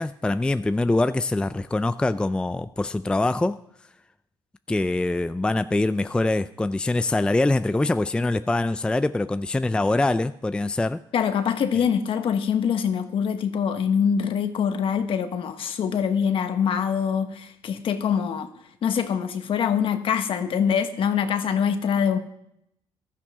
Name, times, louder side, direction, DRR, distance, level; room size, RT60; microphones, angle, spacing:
voice 1, 0.0-3.6 4.7-11.0, left 2 dB, 10° left, 12 dB, 0.4 m, -24 dB
voice 2, 11.1-18.5 18.8-22.2, left 7 dB, 60° left, 8 dB, 1.3 m, -24 dB
15.5 x 13.0 x 3.6 m, 0.76 s
cardioid pair, 95°, 10 cm